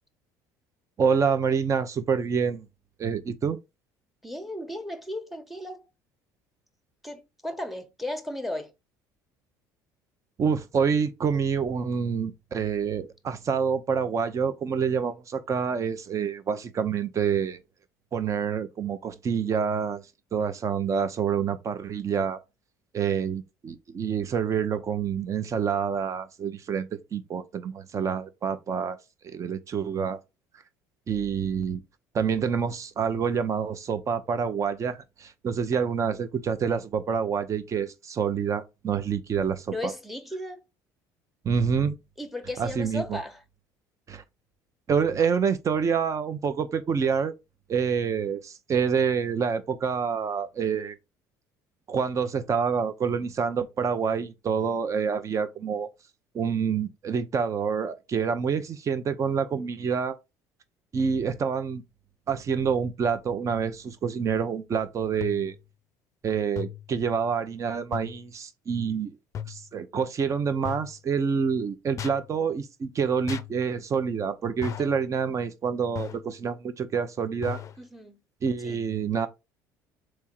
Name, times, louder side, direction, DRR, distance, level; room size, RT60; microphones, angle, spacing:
voice 1, 1.0-2.7 3.0-3.6 10.4-17.6 18.1-20.0 20.3-22.4 22.9-29.0 29.2-30.2 31.1-31.8 32.1-39.9 41.4-42.0 42.6-43.2 44.1-44.2 44.9-47.3 47.7-51.0 51.9-55.9 56.3-60.2 60.9-61.8 62.3-65.5 66.2-69.1 69.5-77.6 78.4-79.3, right 6 dB, 40° right, 0.8 m, -27 dB
voice 2, 4.2-5.9 7.0-8.7 39.7-40.6 42.2-43.4 74.8-74.9 77.8-78.2 78.6-78.8, left 1 dB, ahead, 1.1 m, -35 dB
sound 1, 65.2-65.6 66.6-66.9 67.9-68.2 69.3-69.7 70.6-71.0 72.0-72.3 73.3-73.6 74.6-75.0 75.9-76.3 77.4-77.8, left 8 dB, 40° left, 0.5 m, -36 dB
3.6 x 3.0 x 4.5 m
supercardioid pair, 85°, 8 cm